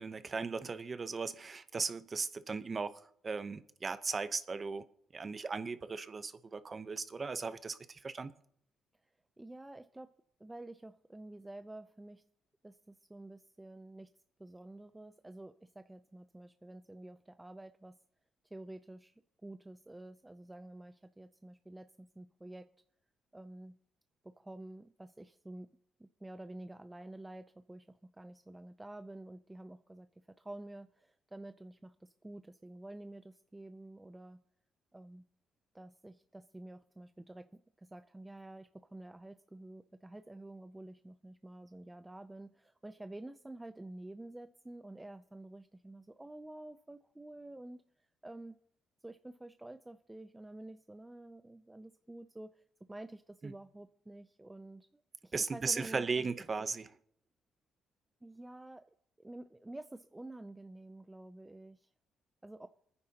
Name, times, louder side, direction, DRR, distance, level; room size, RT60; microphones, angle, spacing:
voice 1, 0.0-4.9 5.1-8.3 53.4-53.5 55.3-56.9, right 4 dB, 35° right, 0.8 m, -37 dB
voice 2, 9.4-10.1 10.4-12.2 12.6-14.1 14.4-18.0 18.4-22.7 23.3-23.8 24.2-25.7 26.0-34.4 34.9-35.3 35.7-47.8 48.2-48.6 49.0-52.6 52.9-56.0 56.6-56.7 58.2-61.9 62.4-62.7, right 1 dB, 10° right, 0.4 m, -50 dB
26.0 x 9.8 x 2.9 m
cardioid pair, 90°, 0 cm